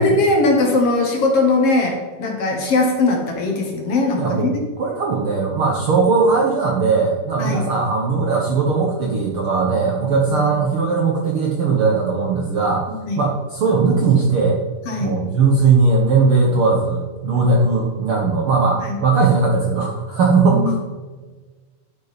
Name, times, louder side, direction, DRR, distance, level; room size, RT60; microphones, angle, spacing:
voice 1, 0.0-4.5 7.4-7.7 10.3-10.5 13.0-13.2 14.9-15.2 18.8-19.0 20.5-20.8, left 3 dB, 55° left, 1 dB, 2.0 m, -19 dB
voice 2, 4.2-4.5 4.8-12.9 13.2-14.6 15.0-20.8, right 4 dB, 70° right, -1 dB, 1.3 m, -18 dB
10.5 x 8.8 x 4.2 m, 1.3 s
omnidirectional pair, 3.9 m